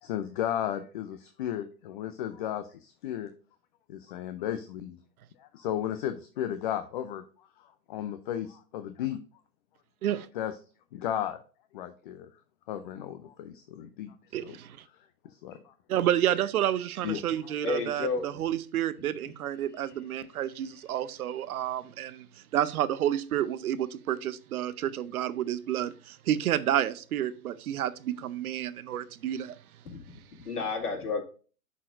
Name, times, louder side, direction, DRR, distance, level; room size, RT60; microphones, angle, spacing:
voice 1, 0.0-3.3 3.9-5.0 5.4-7.2 7.9-9.2 10.3-10.5 10.9-11.4 11.7-12.3 12.7-14.1 14.4-14.6 15.2-15.7 17.0-17.2, left 11 dB, 35° left, 10 dB, 0.4 m, -34 dB
voice 2, 14.3-14.8 15.9-29.6, right 11 dB, 65° right, 15 dB, 0.7 m, -30 dB
voice 3, 17.6-18.4 29.9-30.0 30.5-31.2, left 4 dB, 70° left, 2 dB, 2.1 m, -31 dB
11.0 x 4.2 x 2.5 m, 0.38 s
hypercardioid pair, 115°, 47 cm